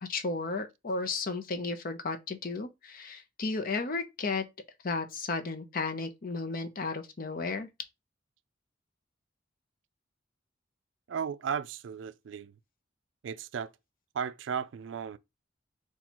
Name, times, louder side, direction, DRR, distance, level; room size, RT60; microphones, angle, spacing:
voice 1, 0.0-4.4 4.8-7.7, left 3 dB, 50° left, 0.7 m, -34 dB
voice 2, 11.1-12.6 13.2-13.7 14.1-15.2, right 7 dB, 65° right, 0.3 m, -35 dB
4.2 x 2.3 x 4.2 m
head